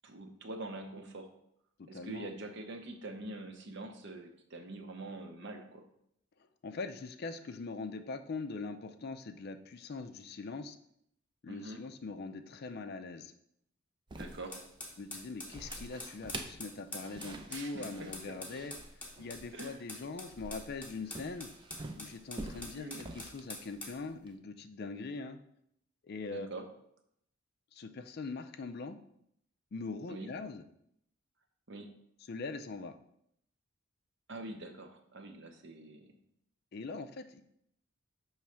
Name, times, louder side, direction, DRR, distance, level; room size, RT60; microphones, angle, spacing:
voice 1, 0.0-1.3 1.9-5.8 11.5-11.8 14.1-14.6 17.5-18.4 19.5-19.8 22.7-23.0 26.3-26.6 30.1-30.3 31.7-31.9 34.3-36.1, right 2 dB, 55° right, 4 dB, 0.8 m, -44 dB
voice 2, 1.8-2.3 6.6-10.8 11.4-13.3 15.0-18.7 19.2-21.5 22.0-25.4 26.0-26.5 27.7-29.0 29.7-30.7 32.3-32.9 36.7-37.4, left 3 dB, 45° left, 9 dB, 0.4 m, -42 dB
sound 1, 14.1-24.3, right 2 dB, 20° right, 0.4 m, -47 dB
sound 2, 14.5-24.0, left 2 dB, 5° left, 1.0 m, -46 dB
6.1 x 3.1 x 5.6 m, 0.72 s
head